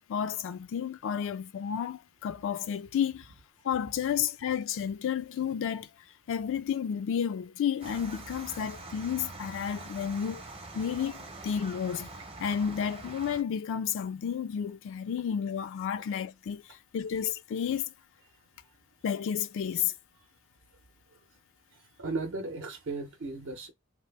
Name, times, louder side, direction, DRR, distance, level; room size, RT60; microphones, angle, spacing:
voice 1, 0.0-3.3 3.6-5.9 6.3-10.4 10.7-12.1 12.4-17.9 19.0-19.9, left 8 dB, 60° left, 0.3 m, -31 dB
sound 1, 7.8-13.4, right 2 dB, 25° right, 0.7 m, -44 dB
voice 2, 22.0-23.7, right 3 dB, 60° right, 0.7 m, -35 dB
2.8 x 2.5 x 3.3 m
head